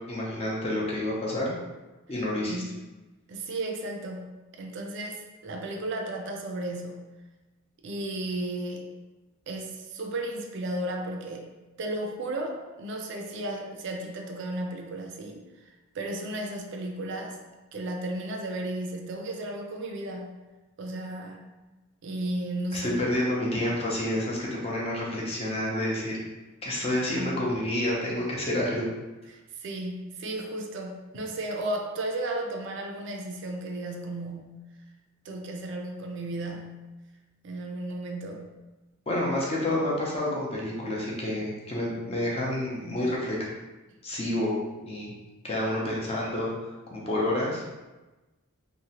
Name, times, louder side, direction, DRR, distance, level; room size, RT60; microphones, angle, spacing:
voice 1, 0.1-1.5 2.1-2.6 22.7-26.2 26.6-28.9 39.1-43.4 44.0-44.5 44.8-45.1 45.4-47.7, left 1 dB, 25° left, -4 dB, 0.5 m, -29 dB
voice 2, 3.3-4.3 4.6-7.0 7.8-8.8 9.5-15.4 15.9-17.4 17.7-20.4 20.8-21.5 22.0-23.0 27.1-27.4 29.3-34.6 35.3-36.9 37.4-38.5, right 1 dB, 55° right, 1 dB, 0.3 m, -34 dB
2.8 x 2.1 x 2.8 m, 1.1 s
head